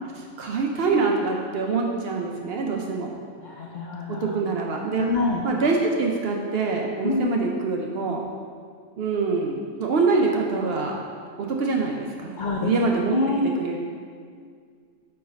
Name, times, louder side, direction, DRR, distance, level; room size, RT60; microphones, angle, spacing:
voice 1, 0.2-3.1 4.1-5.1 5.4-8.2 9.0-11.0 11.4-13.2 13.6-13.8, right 4 dB, 60° right, 0 dB, 0.7 m, -25 dB
voice 2, 3.4-4.3 5.0-5.4 7.0-7.3 12.3-12.7 13.1-13.4, left 3 dB, 85° left, -1 dB, 0.4 m, -26 dB
4.6 x 4.2 x 5.1 m, 2.1 s
omnidirectional pair, 1.4 m